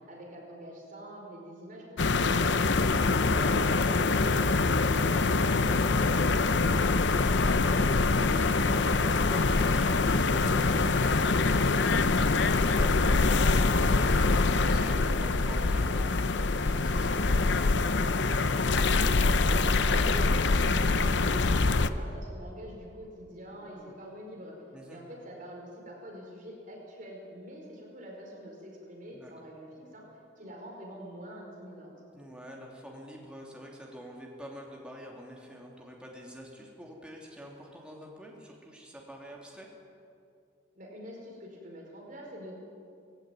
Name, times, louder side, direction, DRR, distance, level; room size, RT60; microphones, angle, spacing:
voice 1, 0.1-2.6 2.9-7.8 19.4-24.6 24.9-30.1 30.4-31.9 40.7-42.6, equal, 45° right, -1 dB, 5.3 m, -45 dB
sound 1, 2.0-21.9, left 3 dB, 65° left, 0.8 m, -24 dB
voice 2, 8.2-18.2 23.5-23.9 24.7-25.0 29.1-29.3 32.1-39.7, equal, 5° right, -2 dB, 3.0 m, -46 dB
19.5 x 16.5 x 9.3 m, 2.4 s
head